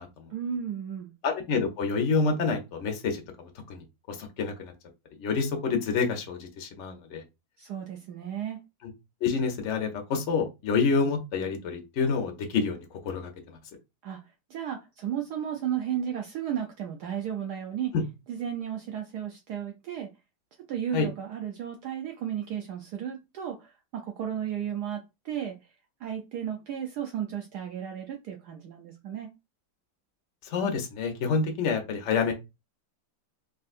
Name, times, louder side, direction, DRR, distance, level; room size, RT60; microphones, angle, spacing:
voice 1, 0.3-1.1 7.6-8.6 14.0-17.9 18.3-20.1 20.7-25.6 26.0-29.3, right 9 dB, 75° right, 0.9 m, -34 dB
voice 2, 1.2-3.2 3.7-4.7 5.2-7.2 9.2-12.8 13.0-13.6 17.9-18.0 20.9-21.1 30.5-32.3, left 4 dB, 70° left, 0.6 m, -28 dB
3.6 x 2.5 x 2.4 m
omnidirectional pair, 2.1 m